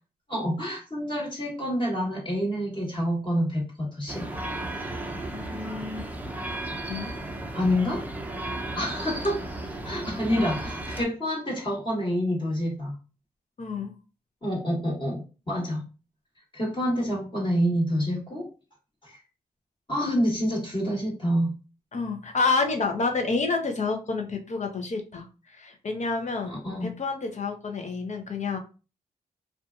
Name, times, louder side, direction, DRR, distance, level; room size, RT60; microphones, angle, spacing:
voice 1, 0.3-4.3 7.5-8.0 8.7-9.4 9.8-12.9 14.4-15.8 16.5-18.5 19.0-19.2 19.9-21.5 26.5-26.9, equal, 30° left, -4 dB, 1.4 m, -27 dB
sound 1, 4.1-11.0, right 1 dB, 10° right, 0.6 m, -34 dB
voice 2, 5.3-6.1 6.9-7.1 13.6-13.9 21.9-25.3 25.5-28.6, left 4 dB, 45° left, 4 dB, 0.7 m, -29 dB
2.6 x 2.4 x 2.4 m, 0.33 s
supercardioid pair, 45°, 17 cm